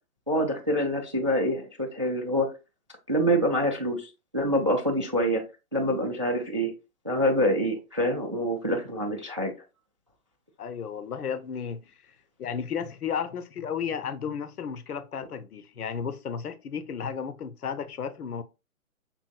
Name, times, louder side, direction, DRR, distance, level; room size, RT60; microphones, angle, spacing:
voice 1, 0.3-2.5 3.1-5.4 5.7-6.7 7.0-9.5, equal, 25° right, 0.3 m, -26 dB
voice 2, 10.6-11.9 12.4-18.4, left 7 dB, 90° left, 0.6 m, -33 dB
6.0 x 3.5 x 2.2 m
hypercardioid pair, 140°, 44 cm